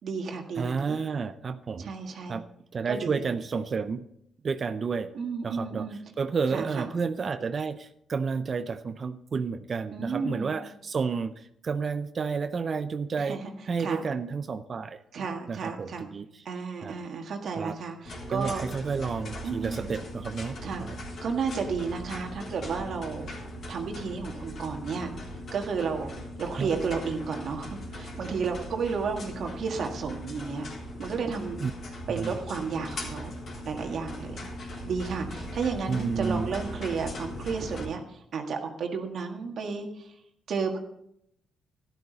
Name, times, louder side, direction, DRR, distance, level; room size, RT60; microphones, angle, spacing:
voice 1, 0.0-1.0 1.8-2.4 2.9-3.2 5.1-6.0 6.5-6.9 9.9-10.6 13.2-13.5 13.8-14.0 15.1-16.0 16.4-18.6 19.4-19.9 20.6-20.9 21.2-23.3 23.7-25.1 25.5-26.1 26.4-30.7 31.0-31.6 32.1-33.3 33.6-34.4 34.7-40.1 40.5-40.8, right 5 dB, 60° right, 3 dB, 1.7 m, -32 dB
voice 2, 0.6-1.9 2.3-2.4 2.7-4.1 4.4-5.1 5.4-5.9 6.2-13.4 13.7-15.0 15.5-16.4 16.8-17.0 17.6-17.8 18.3-21.0 26.6-26.7 31.6-31.7 32.1-32.3 35.9-36.5, right 5 dB, 40° right, 11 dB, 0.5 m, -31 dB
sound 1, 18.0-37.8, left 1 dB, 55° left, 3.6 m, -39 dB
12.5 x 11.5 x 4.0 m, 0.75 s
cardioid pair, 90°, 0 cm